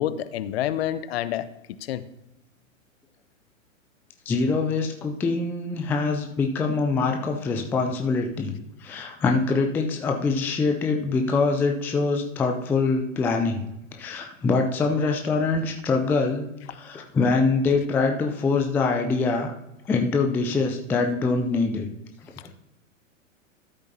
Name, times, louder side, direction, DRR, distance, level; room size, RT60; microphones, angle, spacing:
voice 1, 0.0-2.0, left 11 dB, 50° left, 15 dB, 0.7 m, -28 dB
voice 2, 4.3-8.5 8.8-13.7 14.0-19.5 19.9-21.9, left 4 dB, 5° left, 4 dB, 0.4 m, -24 dB
13.5 x 8.1 x 2.8 m, 0.89 s
figure-of-eight pair, 105°, 39 cm